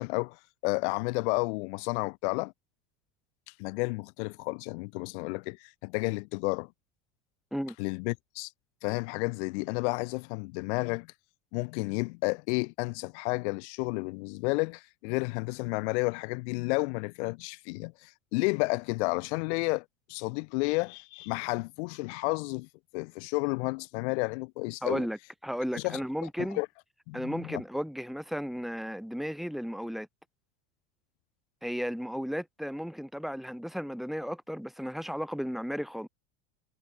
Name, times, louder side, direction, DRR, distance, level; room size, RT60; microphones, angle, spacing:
voice 1, 0.0-2.5 3.6-6.7 7.8-8.5 8.8-11.1 11.5-22.7 22.9-25.1 25.7-26.3 26.5-26.7 27.1-27.6, left 29 dB, 70° left, 2.2 m, -31 dB
voice 2, 24.8-26.6 27.1-30.1 31.6-36.1, equal, ahead, 4.0 m, -34 dB
supercardioid pair, 150°, 35 cm